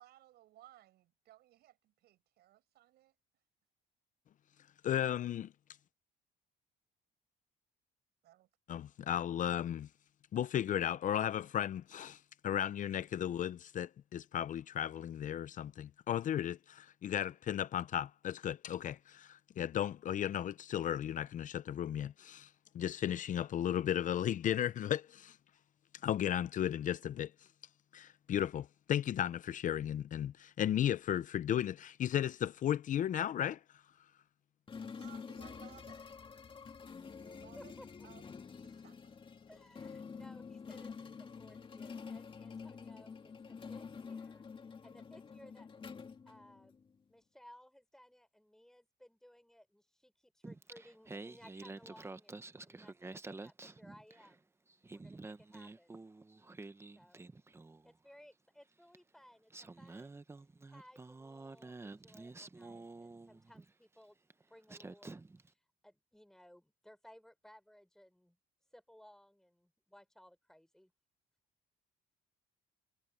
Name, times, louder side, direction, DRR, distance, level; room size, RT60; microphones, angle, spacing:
voice 1, 0.0-3.1 8.2-8.5 34.9-36.1 37.2-38.3 38.6-39.2, right 14 dB, 75° right, 7.3 m, -61 dB
voice 2, 4.8-5.5 8.7-9.9 10.3-22.5 22.7-25.4 26.0-27.3 27.9-33.6, left 10 dB, 50° left, 0.7 m, -35 dB
sound 1, 34.7-46.9, left 5 dB, 30° left, 2.0 m, -48 dB
voice 3, 37.6-38.1 39.5-44.5 44.8-46.8 47.1-54.5 54.9-56.0 56.9-57.3 57.8-60.2 60.6-64.2 64.5-65.1 65.5-68.4 68.7-70.9, equal, 5° left, 5.4 m, -60 dB
Singing, 50.4-54.4 54.7-57.9 58.9-59.0 59.5-63.7 64.3-64.4 64.7-65.5, right 3 dB, 15° right, 1.1 m, -49 dB
cardioid pair, 110°, 17 cm